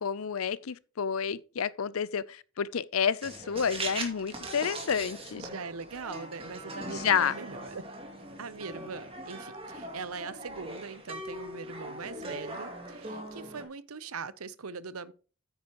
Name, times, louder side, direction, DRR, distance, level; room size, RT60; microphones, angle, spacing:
voice 1, 0.0-5.5 6.9-7.4, left 7 dB, 75° left, 0.6 m, -30 dB
sound 1, 3.2-13.6, right 1 dB, 25° right, 2.2 m, -41 dB
voice 2, 5.3-7.8 8.4-15.1, right 5 dB, 85° right, 0.8 m, -41 dB
9.7 x 9.2 x 3.0 m
head